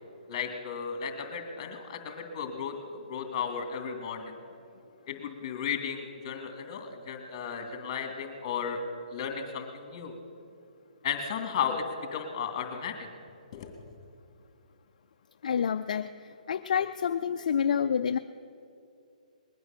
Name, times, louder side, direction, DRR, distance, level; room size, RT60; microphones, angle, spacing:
voice 1, 0.3-4.4 5.1-8.8 9.1-10.1 11.0-11.9 12.1-13.1 13.5-13.7, left 7 dB, 35° left, 5 dB, 2.4 m, -34 dB
voice 2, 15.4-18.2, left 7 dB, 60° left, 8 dB, 0.5 m, -28 dB
20.5 x 9.5 x 7.3 m, 2.5 s
hypercardioid pair, 155°, 4 cm